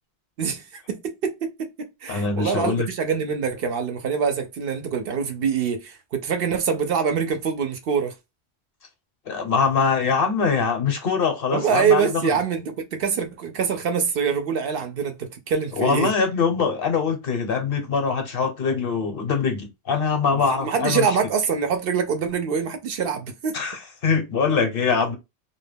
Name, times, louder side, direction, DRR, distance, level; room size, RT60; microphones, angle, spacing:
voice 1, 0.4-8.1 11.5-16.1 20.3-23.5, right 6 dB, 65° right, 0.7 m, -25 dB
voice 2, 2.1-2.9 9.3-12.1 15.7-21.1 23.5-25.2, left 5 dB, 60° left, 0.9 m, -23 dB
2.2 x 2.1 x 3.3 m
omnidirectional pair, 1.1 m